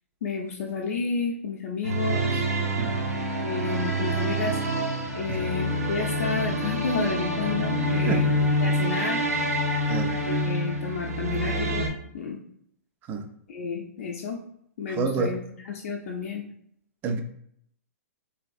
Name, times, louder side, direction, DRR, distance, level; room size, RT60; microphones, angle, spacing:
voice 1, 0.2-2.4 3.4-4.6 5.1-8.3 8.6-9.2 10.2-12.4 13.5-14.4 14.8-16.4, left 5 dB, 60° left, 0.5 m, -31 dB
sound 1, 1.8-11.9, equal, 80° right, 0.6 m, -26 dB
voice 2, 15.0-15.3 17.0-17.2, right 4 dB, 25° right, 0.3 m, -28 dB
3.3 x 2.5 x 2.3 m
hypercardioid pair, 120°, 8 cm